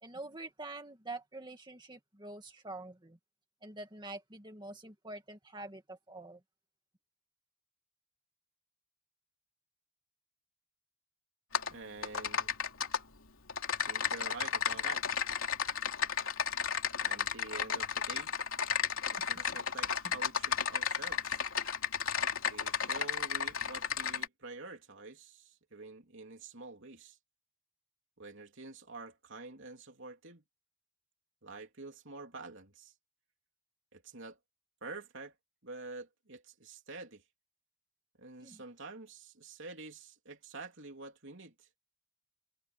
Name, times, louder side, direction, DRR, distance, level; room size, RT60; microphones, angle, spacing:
voice 1, 0.0-3.2 3.6-6.4 20.0-20.1 38.4-38.6, right 2 dB, 20° right, 2.1 m, -46 dB
Typing, 11.5-11.7 12.0-13.0 13.5-24.3, left 7 dB, 70° left, 3.1 m, -33 dB
voice 2, 11.7-12.5 13.8-15.0 17.0-18.3 19.1-21.4 22.5-27.2 28.2-30.4 31.4-32.9 33.9-34.4 34.8-35.3 35.6-37.2 38.2-41.7, right 3 dB, 60° right, 3.5 m, -48 dB
head